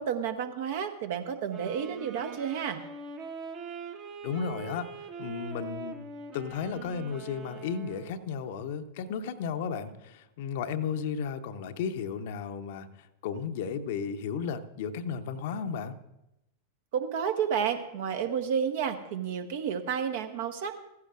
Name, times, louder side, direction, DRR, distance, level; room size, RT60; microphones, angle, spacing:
voice 1, 0.0-2.8 16.9-20.8, right 7 dB, 55° right, 8 dB, 1.0 m, -31 dB
Wind instrument woodwind instrument, 1.5-8.3, right 5 dB, 35° right, 1.2 m, -43 dB
voice 2, 4.2-4.9 5.2-6.0 6.3-12.9 13.2-15.9, left 6 dB, 50° left, 9 dB, 0.8 m, -34 dB
15.5 x 15.0 x 2.5 m, 0.90 s
figure-of-eight pair, 90°, 0 cm